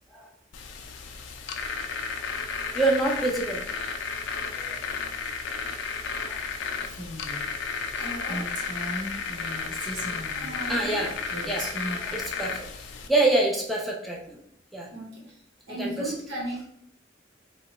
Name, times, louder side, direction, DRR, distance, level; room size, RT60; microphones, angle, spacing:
sound 1, 0.5-13.1, left 5 dB, 80° left, 0.4 m, -33 dB
voice 1, 2.7-3.6 4.6-4.8 9.8-10.0 10.7-11.1 11.4-11.7 12.1-12.5 13.1-14.2 14.7-14.9 15.8-16.1, right 2 dB, ahead, -2 dB, 0.4 m, -25 dB
Female speech woman speaking, 6.8-7.5 7.9-8.0 8.3-10.6 11.3-12.2, equal, 45° right, 0.9 m, -37 dB
voice 2, 7.9-8.5 10.4-11.0 14.9-15.3 15.7-16.7, right 1 dB, 70° right, -1 dB, 1.0 m, -36 dB
2.8 x 2.3 x 4.0 m, 0.67 s
head